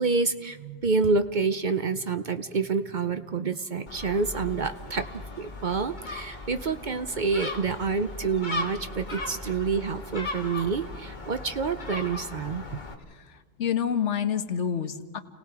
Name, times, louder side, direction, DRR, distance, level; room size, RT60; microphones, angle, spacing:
voice 1, 0.0-5.1 5.4-12.6, right 4 dB, 45° right, 10 dB, 0.7 m, -28 dB
Gull seagull, 3.9-12.9, left 2 dB, 40° left, 1.9 m, -38 dB
voice 2, 13.1-15.2, left 8 dB, 75° left, 10 dB, 1.3 m, -28 dB
30.0 x 18.5 x 4.8 m, 1.5 s
omnidirectional pair, 1.2 m